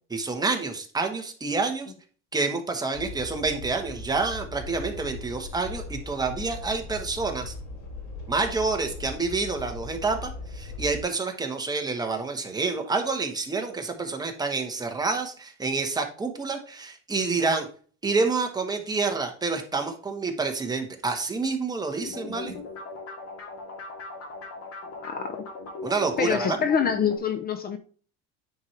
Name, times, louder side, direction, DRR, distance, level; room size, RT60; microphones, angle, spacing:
voice 1, 0.1-1.9 2.3-7.5 8.3-17.7 18.0-22.5 25.8-26.6, right 4 dB, 15° right, 1.2 m, -28 dB
sound 1, 2.9-11.0, left 2 dB, 80° left, 3.7 m, -39 dB
sound 2, 22.0-27.2, left 3 dB, 50° left, 2.4 m, -39 dB
voice 2, 25.0-25.4 26.2-27.8, left 7 dB, 30° left, 0.6 m, -25 dB
9.4 x 4.4 x 3.2 m
cardioid pair, 150°, 29 cm